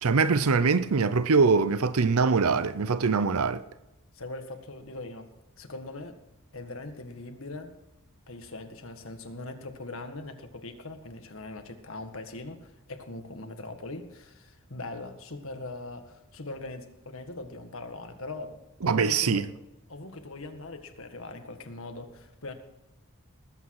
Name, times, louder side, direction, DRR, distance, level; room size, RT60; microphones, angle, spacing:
voice 1, 0.0-3.6 18.8-19.4, right 4 dB, 80° right, 0.6 m, -23 dB
voice 2, 4.1-5.3 5.6-6.2 6.5-7.8 8.3-19.5 19.9-22.5, left 2 dB, 65° left, 1.8 m, -41 dB
20.0 x 8.7 x 4.8 m
head